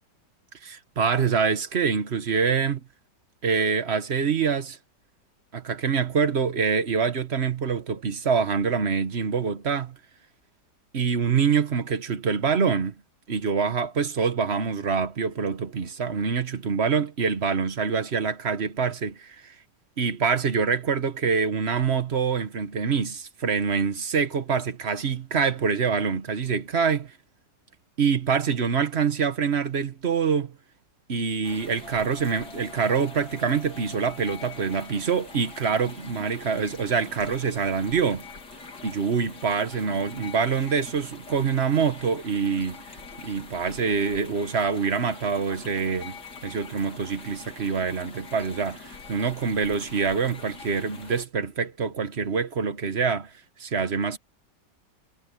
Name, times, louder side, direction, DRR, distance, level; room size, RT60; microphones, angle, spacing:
voice 1, 0.6-2.8 3.4-4.8 5.5-10.0 10.9-12.9 13.3-19.5 20.0-27.1 28.0-30.6 31.1-38.3 38.8-42.8 43.2-53.3 53.6-54.2, right 6 dB, 40° right, 1.4 m, -25 dB
sound 1, 31.4-51.2, left 4 dB, 70° left, 3.5 m, -44 dB
sound 2, 31.8-36.6, left 2 dB, 15° left, 8.0 m, -50 dB
omnidirectional pair, 1.9 m